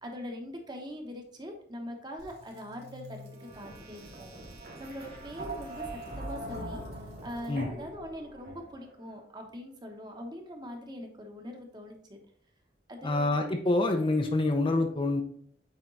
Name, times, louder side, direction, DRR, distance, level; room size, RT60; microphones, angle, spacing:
voice 1, 0.0-4.3 4.8-6.8 7.2-12.2 12.9-13.4, equal, 25° right, 3 dB, 1.1 m, -42 dB
sound 1, 2.2-8.9, right 1 dB, 65° right, 2.8 m, -42 dB
voice 2, 13.0-15.2, left 2 dB, 30° left, 4 dB, 0.7 m, -26 dB
8.8 x 3.7 x 4.0 m, 0.63 s
head